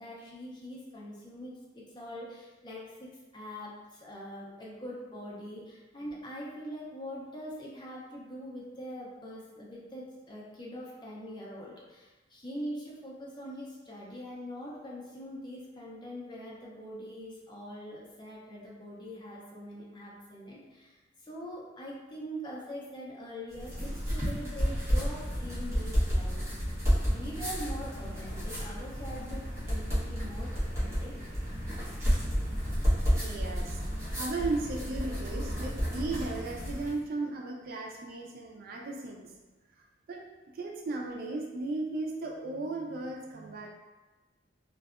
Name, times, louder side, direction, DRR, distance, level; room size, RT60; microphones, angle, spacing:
voice 1, 0.0-26.4 27.0-31.1, equal, 25° left, -4 dB, 0.5 m, -43 dB
sound 1, 23.5-37.0, equal, 15° right, 0.9 m, -31 dB
voice 2, 33.2-33.8 34.2-39.3 40.1-40.2 40.5-43.7, right 3 dB, 50° right, 1 dB, 0.3 m, -36 dB
2.6 x 2.2 x 2.3 m, 1.2 s
head